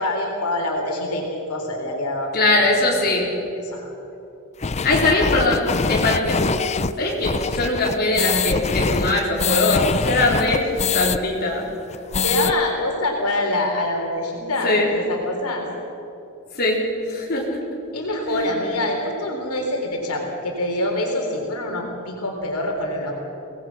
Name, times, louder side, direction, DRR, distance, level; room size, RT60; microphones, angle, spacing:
voice 1, 0.0-2.4 3.6-3.9 12.2-15.7 17.9-23.2, left 1 dB, 85° left, 0 dB, 3.9 m, -25 dB
voice 2, 2.3-3.3 4.8-6.5 7.0-11.7 14.6-14.9 16.5-17.6 18.3-18.5, left 2 dB, 45° left, -3 dB, 4.1 m, -21 dB
sound 1, 4.6-11.2 11.5-11.6 11.9-12.5, left 5 dB, 30° left, 0.5 m, -23 dB
25.0 x 19.0 x 6.0 m, 2.9 s
head